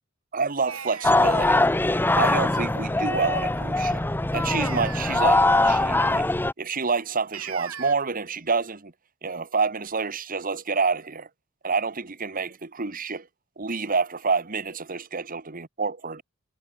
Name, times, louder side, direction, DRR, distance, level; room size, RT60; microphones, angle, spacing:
voice 1, 0.3-1.6 2.2-4.0 4.3-6.3 6.6-8.9 9.2-11.3 11.6-13.3 13.6-16.2, right 4 dB, 40° right, 1.5 m, -28 dB
sound 1, 0.7-1.6 4.5-5.7 7.3-7.9, right 7 dB, 85° right, 4.8 m, -39 dB
sound 2, 1.0-6.5, left 2 dB, 10° left, 0.7 m, -22 dB
head